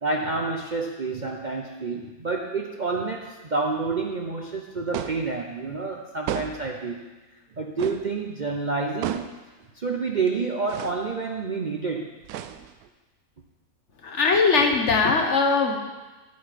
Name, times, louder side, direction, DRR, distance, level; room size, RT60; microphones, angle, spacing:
voice 1, 0.0-7.0 7.6-9.2 9.7-12.1, right 4 dB, 45° right, 1 dB, 0.6 m, -28 dB
sound 1, 4.9-5.3 6.3-6.8 7.8-8.1 9.0-9.4 10.7-11.1 12.2-12.9, right 10 dB, 85° right, 1.1 m, -33 dB
voice 2, 14.0-15.8, left 4 dB, 55° left, 3 dB, 1.2 m, -20 dB
10.0 x 8.0 x 5.1 m, 1.2 s
omnidirectional pair, 1.5 m